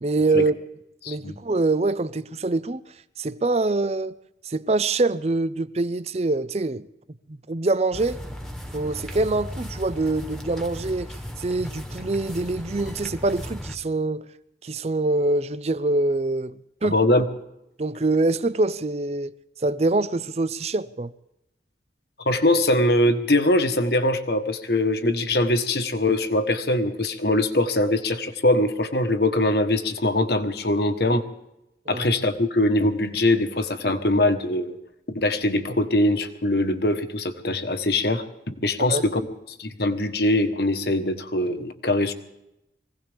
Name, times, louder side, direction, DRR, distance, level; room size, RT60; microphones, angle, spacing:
voice 1, 0.0-0.5 1.1-2.8 3.2-4.1 4.4-6.9 7.3-8.2 8.7-14.3 14.6-17.0 17.8-19.3 19.6-21.1 31.9-32.0 38.9-39.0, right 2 dB, 35° right, 0.5 m, -24 dB
voice 2, 1.0-1.4 16.9-17.2 22.2-31.2 31.9-34.8 35.1-39.2 39.6-42.1, left 1 dB, 60° left, 1.3 m, -22 dB
sound 1, 7.9-13.8, equal, ahead, 1.4 m, -36 dB
23.5 x 17.0 x 3.5 m
head